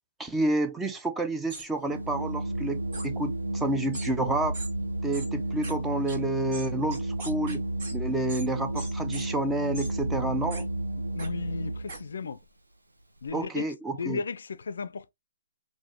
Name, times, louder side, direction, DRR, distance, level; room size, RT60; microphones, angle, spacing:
voice 1, 0.2-4.6 5.0-7.6 7.9-10.7 13.3-14.2, right 2 dB, 10° right, 0.4 m, -30 dB
sound 1, 1.5-1.7 2.9-3.1 3.9-4.1 4.5-4.7 5.1-5.3 5.6-5.7 6.1-6.2 6.5-7.9 8.3-8.5 8.7-9.2 9.7-9.9 10.5-10.6 11.2-11.3 11.9-12.0, right 2 dB, 45° right, 1.7 m, -40 dB
Organ, 1.8-12.1, right 1 dB, 85° right, 0.9 m, -32 dB
voice 2, 11.2-12.4 13.2-15.1, left 5 dB, 65° left, 0.4 m, -35 dB
3.8 x 2.5 x 2.9 m
figure-of-eight pair, 130°, 0 cm